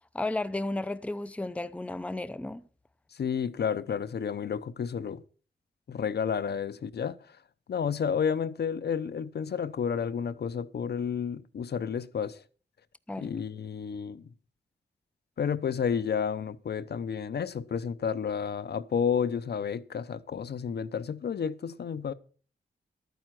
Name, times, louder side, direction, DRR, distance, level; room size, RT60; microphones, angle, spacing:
voice 1, 0.1-2.6 13.1-13.3, left 2 dB, 5° left, 0.6 m, -33 dB
voice 2, 3.1-5.2 5.9-7.2 7.7-12.4 13.2-14.3 15.4-22.1, left 7 dB, 65° left, 0.7 m, -31 dB
12.5 x 9.3 x 5.9 m
wide cardioid pair, 105°, 18 cm